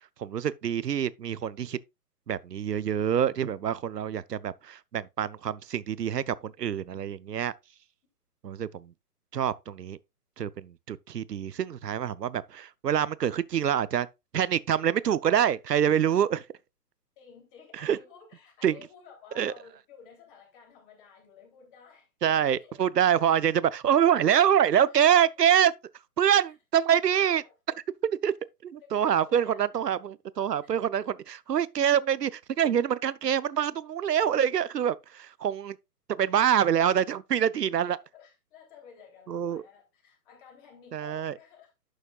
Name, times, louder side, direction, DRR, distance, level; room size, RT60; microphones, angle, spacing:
voice 1, 0.0-1.8 2.3-7.5 8.4-8.9 9.3-10.0 10.4-14.1 14.3-16.4 17.8-18.0 18.6-18.8 19.4-19.5 22.2-25.7 26.2-27.4 28.2-28.3 28.6-35.7 36.2-38.0 39.3-39.6 40.9-41.3, right 9 dB, 80° right, 0.7 m, -25 dB
voice 2, 17.2-22.1 22.6-22.8 24.7-25.3 27.1-27.5 28.8-30.0 30.6-30.7 37.4-41.7, left 6 dB, 35° left, 3.1 m, -53 dB
11.5 x 6.4 x 2.4 m
figure-of-eight pair, 130°, 47 cm